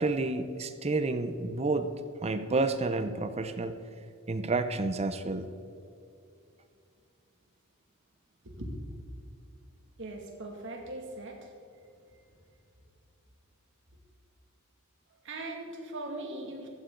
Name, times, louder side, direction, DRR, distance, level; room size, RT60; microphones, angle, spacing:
voice 1, 0.0-1.9 2.2-3.8 4.3-5.5, right 3 dB, 30° right, 10 dB, 0.6 m, -30 dB
voice 2, 10.0-11.5 12.1-12.2 15.2-16.7, right 2 dB, 60° right, 1 dB, 2.2 m, -40 dB
15.0 x 13.5 x 3.9 m, 2.5 s
head